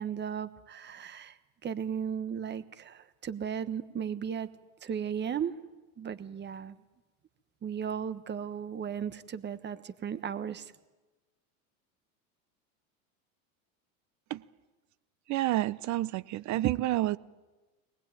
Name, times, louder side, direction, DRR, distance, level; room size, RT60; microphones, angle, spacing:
voice 1, 0.0-4.5 4.8-5.6 6.0-6.8 7.6-10.7, right 8 dB, 25° right, 1.3 m, -36 dB
voice 2, 15.3-17.2, right 15 dB, 45° right, 0.9 m, -29 dB
24.5 x 19.5 x 9.1 m
supercardioid pair, 110°, 42 cm